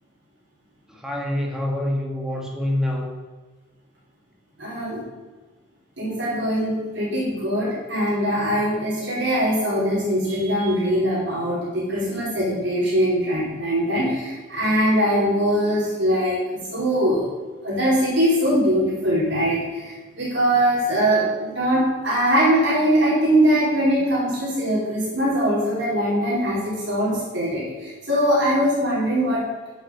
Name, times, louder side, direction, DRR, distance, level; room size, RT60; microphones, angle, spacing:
voice 1, 1.0-3.2, left 1 dB, 5° right, 0 dB, 2.1 m, -26 dB
voice 2, 4.6-5.0 6.0-17.3 17.6-29.4, equal, 65° right, -9 dB, 4.9 m, -22 dB
10.0 x 6.6 x 9.2 m, 1.3 s
head